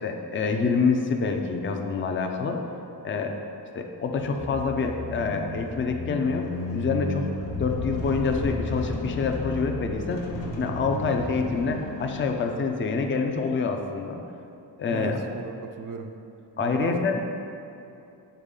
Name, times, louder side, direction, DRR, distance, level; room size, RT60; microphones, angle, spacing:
voice 1, 0.0-2.6 3.0-3.3 3.7-7.3 7.6-10.2 10.5-14.2 14.8-15.2 16.6-17.2, left 4 dB, 30° left, 4 dB, 0.4 m, -26 dB
sound 1, 4.0-12.8, left 2 dB, 80° left, 0.9 m, -33 dB
voice 2, 14.9-16.1 16.6-17.2, right 5 dB, 50° right, 6 dB, 0.5 m, -36 dB
6.8 x 4.0 x 3.7 m, 2.7 s
wide cardioid pair, 110°, 43 cm